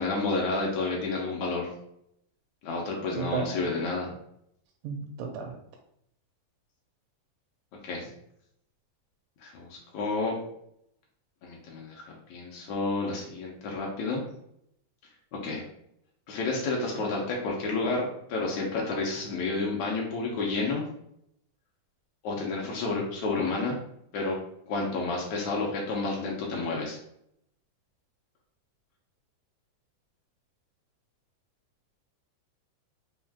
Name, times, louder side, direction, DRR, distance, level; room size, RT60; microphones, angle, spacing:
voice 1, 0.0-1.7 2.6-4.1 7.8-8.1 9.4-10.4 11.4-14.2 15.4-15.6 16.3-20.8 22.2-23.8 24.1-24.4 24.7-27.0, left 3 dB, 75° left, -1 dB, 1.9 m, -30 dB
voice 2, 3.2-3.5 4.8-5.6, right 6 dB, 85° right, 1 dB, 2.1 m, -33 dB
5.3 x 2.4 x 3.5 m, 0.74 s
omnidirectional pair, 3.6 m